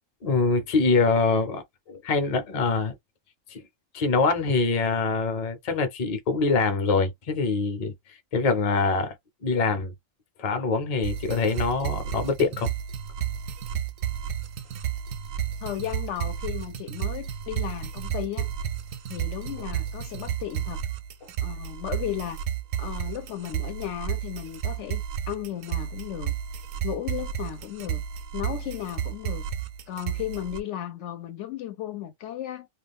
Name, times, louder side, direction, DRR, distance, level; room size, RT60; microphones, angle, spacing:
voice 1, 0.2-3.0 3.5-3.6 3.9-9.1 9.4-9.9 10.4-12.7, left 4 dB, 40° left, 0.6 m, -24 dB
sound 1, 11.0-30.6, right 9 dB, 80° right, 0.9 m, -32 dB
voice 2, 15.6-18.5 19.1-20.8 21.4-22.4 22.8-26.3 26.8-28.0 28.3-29.5 29.9-32.7, left 11 dB, 70° left, 0.8 m, -35 dB
2.3 x 2.3 x 3.5 m
omnidirectional pair, 1.3 m